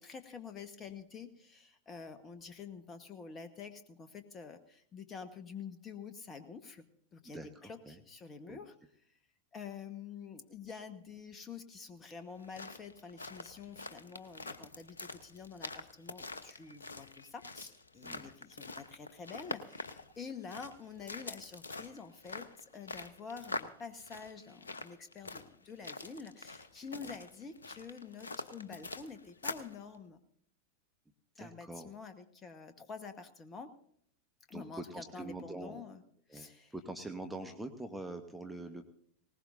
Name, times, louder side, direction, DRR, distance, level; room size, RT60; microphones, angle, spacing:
voice 1, 0.0-6.8 7.1-8.7 9.5-30.2 31.3-33.7 34.5-36.0 36.3-36.7, left 5 dB, 25° left, 9 dB, 1.2 m, -48 dB
voice 2, 7.3-8.0 8.5-8.6 18.0-18.4 27.0-27.1 31.4-31.9 34.5-35.8 36.3-38.8, right 2 dB, 5° right, 7 dB, 1.1 m, -44 dB
sound 1, 12.3-29.8, left 3 dB, 75° left, 0.9 m, -45 dB
20.0 x 19.0 x 2.6 m, 0.64 s
figure-of-eight pair, 90°, 0 cm